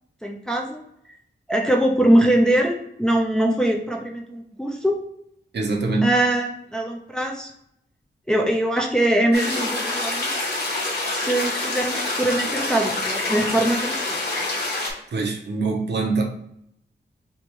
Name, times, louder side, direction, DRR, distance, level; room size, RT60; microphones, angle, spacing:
voice 1, 0.2-0.8 1.5-5.0 6.0-7.5 8.3-10.3 11.1-14.5, right 1 dB, 5° left, 0 dB, 0.6 m, -22 dB
voice 2, 5.5-6.1 15.1-16.2, right 3 dB, 65° right, 1 dB, 0.8 m, -23 dB
sound 1, 9.3-14.9, left 2 dB, 60° left, 1.4 m, -26 dB
3.4 x 3.1 x 4.5 m, 0.73 s
wide cardioid pair, 165°, 19 cm